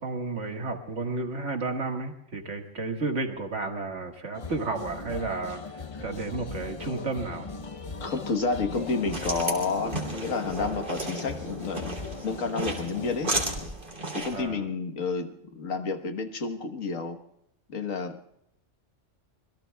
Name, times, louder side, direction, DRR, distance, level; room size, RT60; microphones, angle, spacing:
voice 1, 0.0-5.6 6.0-7.5 14.3-14.7, right 3 dB, 65° right, 3 dB, 2.0 m, -32 dB
sound 1, 4.3-13.7, left 4 dB, 35° left, 0.6 m, -39 dB
sound 2, 4.8-5.2 5.5-7.2 7.5-7.8 8.1-9.9, right 1 dB, 15° right, 2.5 m, -48 dB
voice 2, 8.0-12.0 12.2-13.3 13.6-13.7 14.1-17.2 17.7-18.2, left 4 dB, 85° left, 7 dB, 1.7 m, -30 dB
sound 3, 8.7-14.4, right 2 dB, 40° right, 3.1 m, -34 dB
26.0 x 21.5 x 2.3 m, 0.78 s
omnidirectional pair, 1.3 m